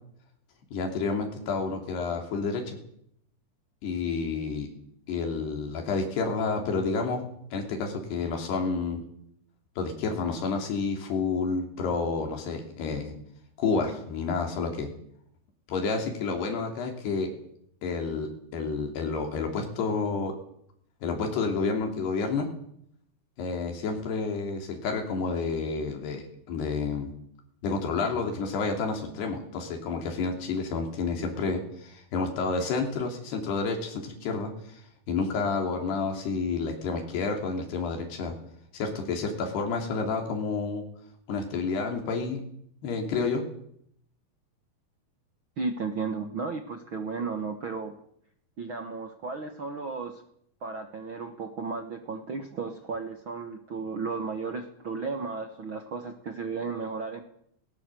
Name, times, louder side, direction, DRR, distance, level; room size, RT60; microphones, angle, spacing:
voice 1, 0.7-2.8 3.8-4.7 5.1-7.2 7.5-9.0 9.8-13.1 13.6-14.9 15.7-17.3 17.8-20.3 21.0-22.5 23.4-27.1 27.6-34.8 35.1-38.4 38.7-40.8 41.3-42.4 42.8-43.4, left 4 dB, 85° left, 3 dB, 5.1 m, -30 dB
voice 2, 45.6-47.9 48.6-50.2 50.6-57.2, right 4 dB, 70° right, 6 dB, 1.2 m, -34 dB
19.0 x 19.0 x 7.7 m, 0.69 s
omnidirectional pair, 4.6 m